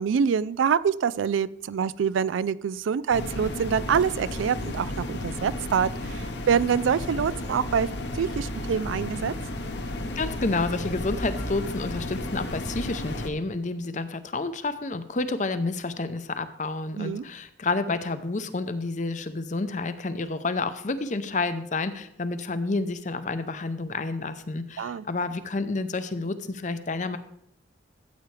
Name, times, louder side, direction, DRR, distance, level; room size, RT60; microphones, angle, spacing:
voice 1, 0.0-7.9 8.1-9.3 17.0-17.3 24.8-25.0, right 7 dB, 90° right, 18 dB, 0.3 m, -25 dB
sound 1, 3.1-13.3, left 1 dB, 60° left, 1.0 m, -33 dB
voice 2, 10.1-27.2, left 3 dB, 40° left, 11 dB, 0.6 m, -29 dB
13.5 x 8.2 x 3.3 m, 0.73 s
head